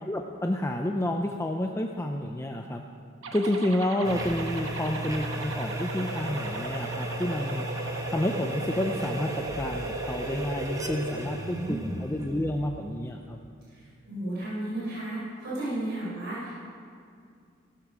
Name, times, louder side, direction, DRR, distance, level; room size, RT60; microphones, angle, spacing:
voice 1, 0.0-2.8 3.3-7.7 8.1-13.4, left 1 dB, 15° left, 3 dB, 0.6 m, -30 dB
sound 1, 3.2-11.2, right 2 dB, 85° right, 1.2 m, -37 dB
sound 2, 4.0-13.2, right 1 dB, 15° right, 1.1 m, -36 dB
voice 2, 11.2-12.0 13.7-16.6, right 1 dB, 55° right, -8 dB, 4.8 m, -34 dB
17.0 x 13.0 x 5.1 m, 2.3 s
head